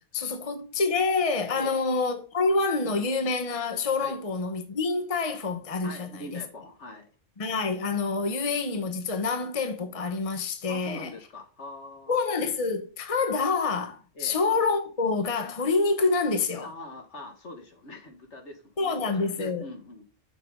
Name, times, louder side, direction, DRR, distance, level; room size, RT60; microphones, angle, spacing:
voice 1, 0.1-6.4 7.4-11.1 12.1-16.7 18.8-19.6, left 4 dB, 30° left, 1.1 m, -27 dB
voice 2, 5.8-7.1 10.7-12.2 14.1-14.4 16.6-20.0, left 1 dB, 65° left, 2.1 m, -43 dB
7.2 x 6.0 x 5.1 m
omnidirectional pair, 1.3 m